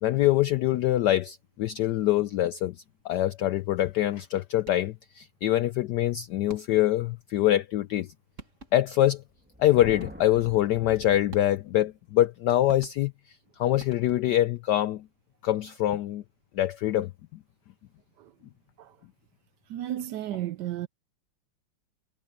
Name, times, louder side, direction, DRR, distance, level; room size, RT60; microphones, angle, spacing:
voice 1, 0.0-2.8 3.0-8.1 8.7-9.2 9.6-15.1 15.4-16.2 16.5-17.1, left 13 dB, 85° left, 0.9 m, -24 dB
sound 1, 4.6-5.1 6.5-7.0 8.0-8.1 8.4-9.0 10.0-10.5 11.3-11.9 12.7-13.3 13.8-14.5, right 5 dB, 35° right, 2.1 m, -49 dB
Thunder, 9.3-11.7, right 1 dB, 5° right, 1.1 m, -46 dB
voice 2, 19.7-20.9, right 13 dB, 75° right, 1.0 m, -33 dB
omnidirectional pair, 2.3 m